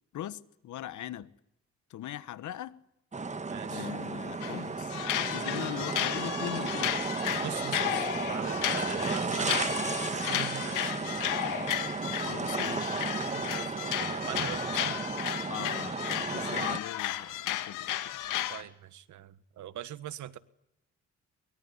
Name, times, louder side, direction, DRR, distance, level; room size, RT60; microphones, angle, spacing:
voice 1, 0.1-1.3 1.9-2.8 3.7-7.0 12.2-13.0 15.5-18.0, left 12 dB, 75° left, 1.3 m, -40 dB
sound 1, 3.1-16.8, right 4 dB, 25° right, 1.4 m, -34 dB
voice 2, 3.5-3.9 7.4-9.8 10.1-11.2 13.2-15.0 18.5-20.4, right 11 dB, 70° right, 1.5 m, -42 dB
sound 2, 4.4-4.6 4.9-18.6, left 13 dB, 90° left, 2.0 m, -34 dB
23.5 x 22.5 x 9.8 m
cardioid pair, 90°, 30 cm